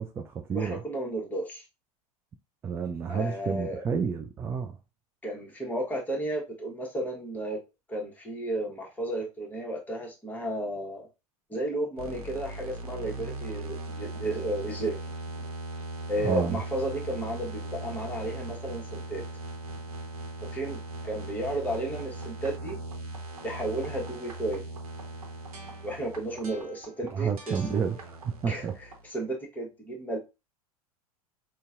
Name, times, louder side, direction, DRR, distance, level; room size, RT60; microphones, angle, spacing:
voice 1, 0.0-0.8 2.6-4.8 16.2-16.6 27.1-28.7, right 6 dB, 15° right, 0.3 m, -30 dB
voice 2, 0.5-1.6 3.1-3.8 5.2-7.6 7.9-11.1 11.5-15.0 16.1-19.3 20.5-22.8 23.4-24.6 25.8-27.8 28.5-30.2, right 1 dB, 10° left, 1.1 m, -33 dB
sound 1, 12.0-29.1, right 2 dB, 70° right, 0.9 m, -39 dB
5.2 x 2.2 x 2.4 m
figure-of-eight pair, 85°, 19 cm